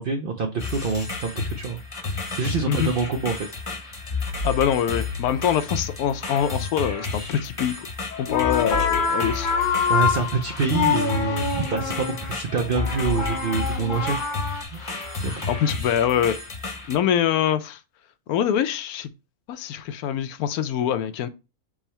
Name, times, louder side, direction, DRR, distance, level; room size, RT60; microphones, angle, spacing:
voice 1, 0.0-4.4 9.9-14.2 14.7-14.8 15.2-15.4, right 5 dB, 75° right, 0.5 m, -27 dB
sound 1, 0.6-17.0, left 3 dB, 25° left, 0.8 m, -31 dB
voice 2, 4.4-7.9 8.2-9.5 15.5-16.4 16.9-17.8 18.3-19.1 19.5-21.3, left 9 dB, 85° left, 1.1 m, -24 dB
sound 2, 8.1-14.6, left 6 dB, 50° left, 0.6 m, -26 dB
3.6 x 3.2 x 4.2 m
omnidirectional pair, 1.5 m